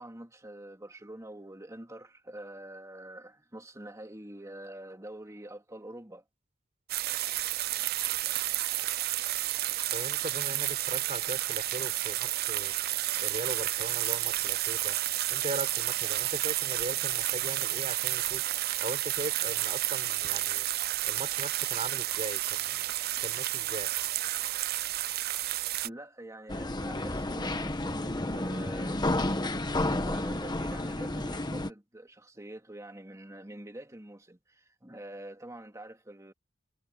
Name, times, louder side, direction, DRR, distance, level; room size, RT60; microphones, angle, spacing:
voice 1, 0.0-6.2 25.8-29.0 29.8-36.3, right 1 dB, 15° right, 2.7 m, -46 dB
sound 1, 6.9-25.9, right 15 dB, 50° right, 0.5 m, -31 dB
voice 2, 9.9-20.7 21.0-22.9 23.2-23.9, right 2 dB, 35° right, 4.3 m, -39 dB
sound 2, 26.5-31.7, left 1 dB, 20° left, 1.4 m, -31 dB
head